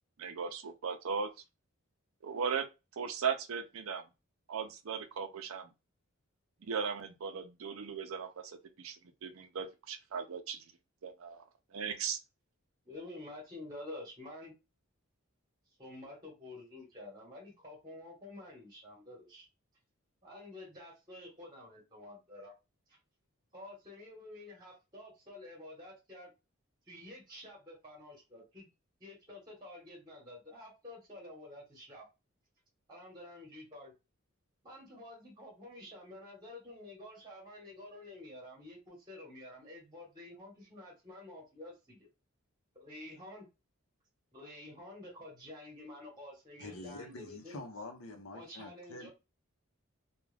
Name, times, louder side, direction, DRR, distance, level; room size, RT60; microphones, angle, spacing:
voice 1, 0.2-1.3 2.2-2.7 3.0-4.0 4.5-5.7 6.6-9.0 9.2-10.6 11.0-11.4 11.7-12.2, right 6 dB, 75° right, 0.5 m, -37 dB
voice 2, 12.8-14.5 15.8-19.5 20.2-22.5 22.9-23.0 23.5-26.3 26.9-28.7 29.0-32.1 32.9-33.9 34.6-42.1 42.8-43.5 44.3-47.6 48.3-49.1, left 1 dB, 20° right, 1.1 m, -49 dB
voice 3, 46.6-49.1, left 2 dB, 75° left, 0.7 m, -46 dB
2.3 x 2.3 x 3.2 m
head